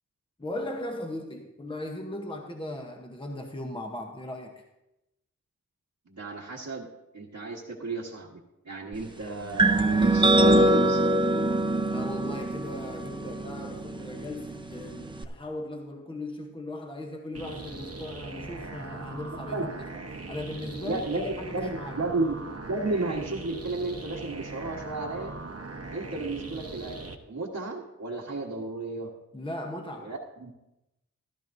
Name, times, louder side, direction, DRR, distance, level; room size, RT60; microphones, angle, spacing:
voice 1, 0.4-4.7 11.9-19.7 20.3-22.0 29.3-30.2, left 1 dB, 15° left, 3 dB, 1.0 m, -38 dB
voice 2, 6.1-6.9 7.1-8.4 8.6-11.1 19.5-19.7 20.8-22.3 22.7-25.3 25.9-27.0 27.3-29.1 30.0-30.5, right 2 dB, 70° right, -5 dB, 1.4 m, -33 dB
sound 1, 9.6-15.2, right 2 dB, 15° right, 0.8 m, -24 dB
sound 2, 17.3-27.2, right 3 dB, 55° right, 1.1 m, -40 dB
15.0 x 12.0 x 2.7 m, 0.92 s
wide cardioid pair, 70°, 30 cm